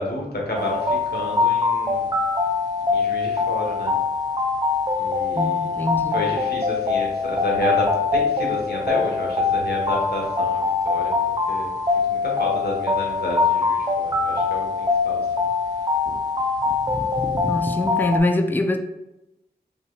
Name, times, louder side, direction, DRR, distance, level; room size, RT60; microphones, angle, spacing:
voice 1, 0.0-2.2 2.9-4.0 5.0-5.6 6.1-11.1 11.5-11.7 12.1-15.2, left 1 dB, 70° left, -1 dB, 1.2 m, -30 dB
sound 1, 0.5-18.2, left 4 dB, 25° right, 0.7 m, -23 dB
voice 2, 5.4-6.2 17.4-18.8, left 2 dB, 10° left, 5 dB, 0.4 m, -23 dB
5.5 x 3.1 x 2.4 m, 0.94 s
wide cardioid pair, 60°, 17 cm